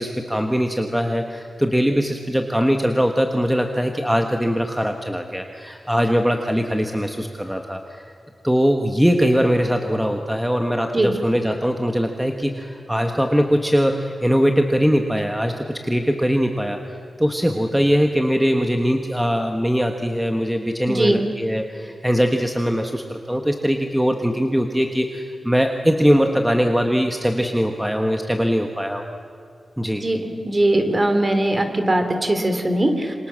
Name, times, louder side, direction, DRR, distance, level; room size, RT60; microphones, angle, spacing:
voice 1, 0.0-8.1 8.4-29.0 29.8-30.0, equal, 5° right, 4 dB, 1.3 m, -21 dB
voice 2, 20.9-21.2 30.0-30.2 30.4-33.1, right 1 dB, 25° right, 7 dB, 3.0 m, -20 dB
28.5 x 25.5 x 7.6 m, 2.6 s
wide cardioid pair, 165°, 0 cm